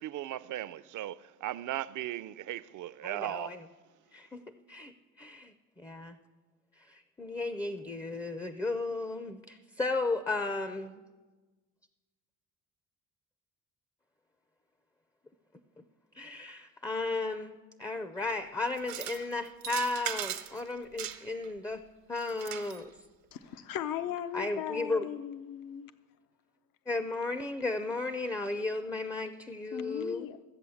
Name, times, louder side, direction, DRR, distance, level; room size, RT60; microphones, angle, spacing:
voice 1, 0.0-3.6, right 13 dB, 60° right, 0.5 m, -37 dB
voice 2, 3.0-3.6 4.1-4.4 4.7-6.2 6.8-10.9 15.8-15.9 16.1-21.8 22.1-22.9 24.3-25.1 26.9-30.3, left 3 dB, 10° left, 0.4 m, -34 dB
sound 1, 18.8-19.2 19.6-20.6 21.0-21.5 22.2-22.8, right 10 dB, 85° right, 1.1 m, -38 dB
voice 3, 23.3-25.9 29.7-30.4, left 10 dB, 70° left, 0.7 m, -37 dB
14.0 x 8.1 x 7.0 m
cardioid pair, 125°, 35 cm